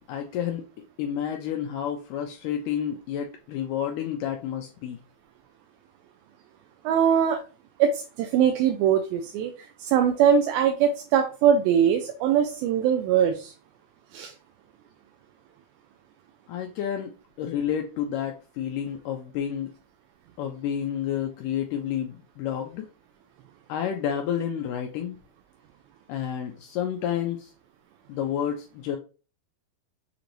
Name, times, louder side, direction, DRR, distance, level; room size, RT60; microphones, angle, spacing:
voice 1, 0.1-0.6 1.0-5.0 16.5-19.7 20.4-22.9 23.7-25.2 26.1-27.5 28.1-29.0, left 9 dB, 90° left, 4 dB, 1.8 m, -30 dB
voice 2, 6.8-7.4 7.8-13.5 14.1-14.3, right 8 dB, 85° right, 4 dB, 2.3 m, -22 dB
6.8 x 2.6 x 3.0 m, 0.34 s
omnidirectional pair, 4.3 m